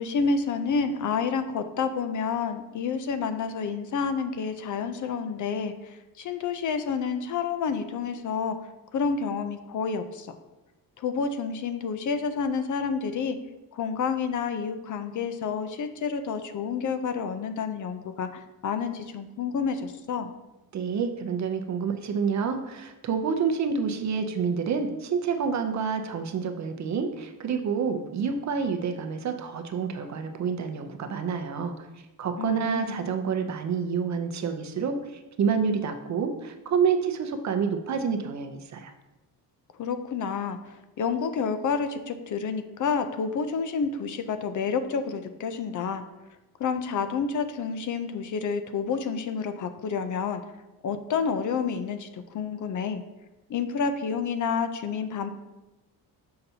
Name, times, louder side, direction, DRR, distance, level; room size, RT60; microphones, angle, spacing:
voice 1, 0.0-8.6 8.9-10.3 11.0-13.4 13.7-20.3 32.4-33.0 39.8-40.6 41.0-46.0 46.6-50.4 50.8-53.0 53.5-55.3, left 5 dB, 50° left, 9 dB, 0.5 m, -29 dB
voice 2, 20.7-31.9 32.2-35.0 35.4-38.9, right 6 dB, 45° right, 6 dB, 0.6 m, -28 dB
6.7 x 5.7 x 2.8 m, 1.0 s
cardioid pair, 135°, 39 cm